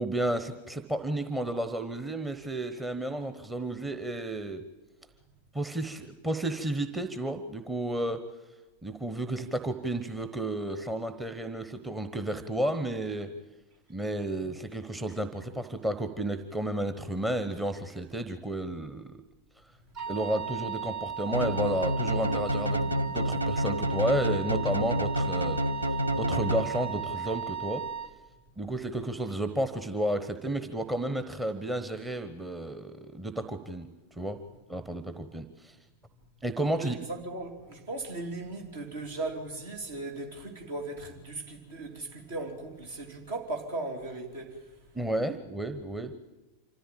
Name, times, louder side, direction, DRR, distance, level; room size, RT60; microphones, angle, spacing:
voice 1, 0.0-4.6 5.5-8.2 8.8-13.3 13.9-19.2 20.1-25.6 26.2-27.8 28.6-33.9 34.2-34.4 34.7-35.8 36.4-37.0 44.9-46.1, right 1 dB, 10° right, 1.1 m, -32 dB
Wind instrument woodwind instrument, 20.0-28.1, right 7 dB, 35° right, 1.0 m, -36 dB
sound 1, 21.3-27.1, equal, 85° right, 0.8 m, -29 dB
voice 2, 36.8-44.6, right 2 dB, 60° right, 3.5 m, -37 dB
26.0 x 14.0 x 8.9 m
figure-of-eight pair, 90°, 0 cm